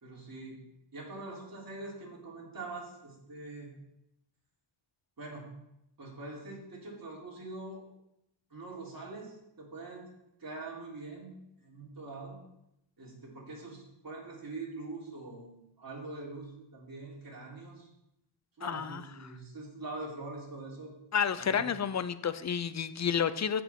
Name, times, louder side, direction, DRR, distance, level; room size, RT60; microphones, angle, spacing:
voice 1, 0.0-0.6 0.9-3.7 5.2-5.5 6.0-7.8 8.5-10.1 10.4-11.3 11.6-12.4 13.0-17.9 18.6-20.9 21.4-21.7, right 2 dB, 45° right, -4 dB, 3.3 m, -44 dB
voice 2, 18.6-19.3 21.1-23.6, left 7 dB, 35° left, 14 dB, 0.4 m, -31 dB
14.5 x 6.0 x 3.6 m, 0.82 s
wide cardioid pair, 120°, 50 cm